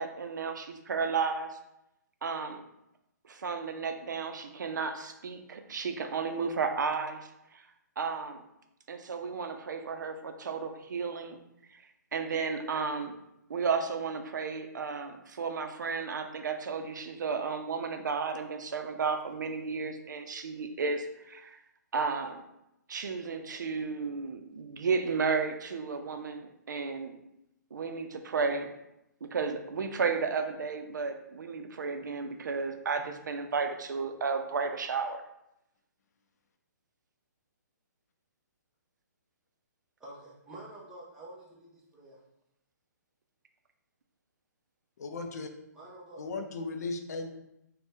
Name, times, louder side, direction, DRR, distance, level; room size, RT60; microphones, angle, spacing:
voice 1, 0.0-1.6 2.2-2.6 3.2-7.6 8.0-8.4 8.9-11.4 11.7-11.8 12.1-13.1 13.5-21.6 21.9-22.4 22.9-27.2 27.7-28.7 29.2-35.2, right 5 dB, 85° right, 6 dB, 0.4 m, -33 dB
voice 2, 40.0-42.2 45.7-46.2, right 1 dB, 5° right, -6 dB, 0.5 m, -48 dB
voice 3, 45.0-45.5 46.2-47.3, left 3 dB, 60° left, 5 dB, 0.4 m, -36 dB
2.6 x 2.1 x 3.4 m, 0.84 s
hypercardioid pair, 155°, 10 cm